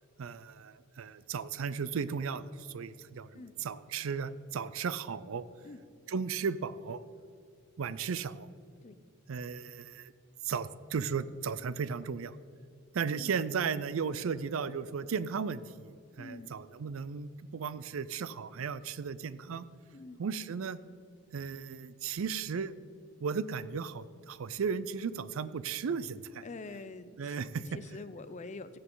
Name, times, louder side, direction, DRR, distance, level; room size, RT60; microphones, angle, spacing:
voice 1, 0.2-5.4 6.1-7.0 7.8-8.5 9.3-10.1 10.4-12.4 12.9-19.7 20.2-20.8 21.3-22.7 23.2-26.4 27.2-27.7, right 6 dB, 80° right, 16 dB, 0.4 m, -35 dB
voice 2, 16.2-16.5 19.9-20.2 26.4-27.4 27.7-28.8, left 3 dB, 35° left, 13 dB, 0.4 m, -45 dB
15.0 x 7.9 x 3.8 m, 2.3 s
head